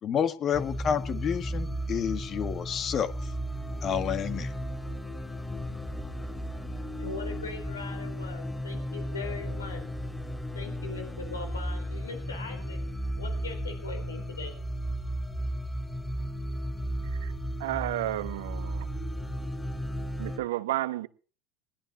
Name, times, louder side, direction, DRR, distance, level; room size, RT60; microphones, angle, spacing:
voice 1, 0.0-3.1 3.8-4.5, left 8 dB, 40° left, 1.8 m, -29 dB
sound 1, 0.5-20.4, equal, 5° left, 4.3 m, -34 dB
voice 2, 7.0-9.8 10.5-12.8 13.2-14.5, left 4 dB, 85° left, 3.8 m, -40 dB
voice 3, 17.6-18.9 20.2-21.1, right 15 dB, 75° right, 1.0 m, -31 dB
21.5 x 19.5 x 3.1 m
hypercardioid pair, 80°, 0 cm